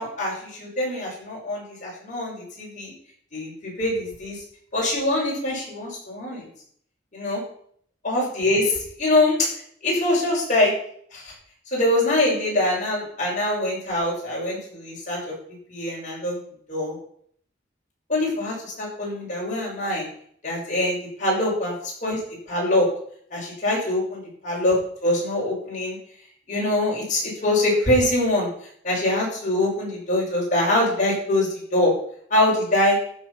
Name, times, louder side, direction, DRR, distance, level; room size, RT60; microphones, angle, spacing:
voice 1, 0.0-2.9 3.3-4.4 4.7-6.4 7.1-7.4 8.0-9.4 9.8-10.7 11.1-11.2 11.7-15.2 15.7-16.4 16.7-17.0 18.1-20.0 20.4-21.7 22.0-22.2 22.5-22.9 23.3-24.8 25.0-26.0 26.5-28.5 28.8-31.9 32.3-33.0, left 1 dB, 45° left, -4 dB, 6.5 m, -23 dB
14.0 x 6.5 x 5.9 m, 0.62 s
head